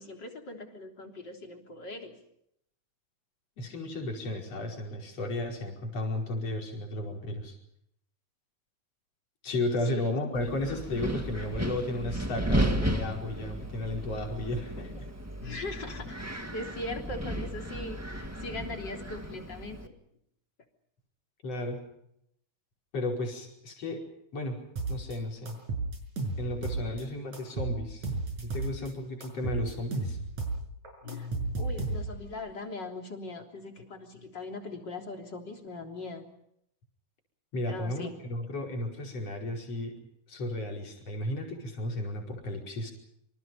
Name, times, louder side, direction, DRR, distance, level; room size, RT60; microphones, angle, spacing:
voice 1, 0.0-2.2 9.9-10.1 15.4-19.9 31.0-36.3 37.7-38.1, left 2 dB, 35° left, 3 dB, 3.9 m, -40 dB
voice 2, 3.6-7.6 9.4-15.1 21.4-21.8 22.9-24.0 24.3-24.6 24.9-25.6 26.4-28.1 28.4-30.2 37.5-40.0 40.3-42.9, left 1 dB, 50° left, 1 dB, 6.0 m, -34 dB
Wind, 10.3-19.9, right 1 dB, 10° right, 1.0 m, -34 dB
sound 1, 24.8-25.2 25.5-27.0 27.3-28.9 29.2-32.3, right 3 dB, 60° right, 6.7 m, -33 dB
27.5 x 26.0 x 5.5 m, 0.75 s
omnidirectional pair, 3.7 m